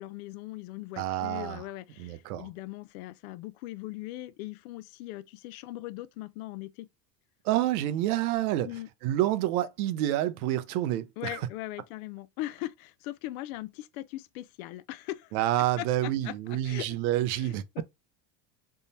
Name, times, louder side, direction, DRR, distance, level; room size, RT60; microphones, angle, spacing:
voice 1, 0.0-6.9 8.6-8.9 11.2-15.4 15.8-16.9 17.3-17.8, left 16 dB, 80° left, 0.5 m, -40 dB
voice 2, 1.0-1.6 2.0-2.5 7.4-8.7 9.0-11.4 15.3-17.6, right 13 dB, 85° right, 0.7 m, -28 dB
3.6 x 2.0 x 4.0 m
supercardioid pair, 145°, 42 cm